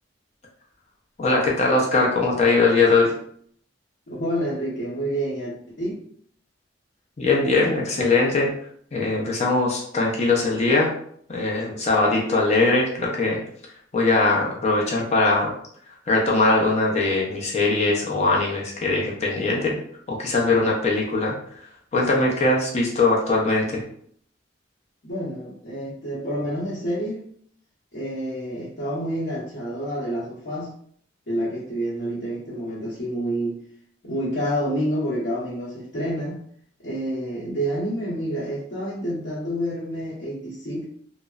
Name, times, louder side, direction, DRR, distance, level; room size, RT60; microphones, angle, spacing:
voice 1, 1.2-3.1 7.2-8.5 8.9-10.9 11.3-13.4 13.9-15.5 16.1-19.8 20.1-21.3 21.9-23.8, left 3 dB, 35° left, -2 dB, 0.5 m, -21 dB
voice 2, 4.1-6.0 25.0-27.2 27.9-30.7 31.3-33.6 34.0-36.4 36.8-40.8, equal, 65° left, -10 dB, 0.9 m, -28 dB
2.9 x 2.0 x 2.3 m, 0.62 s
head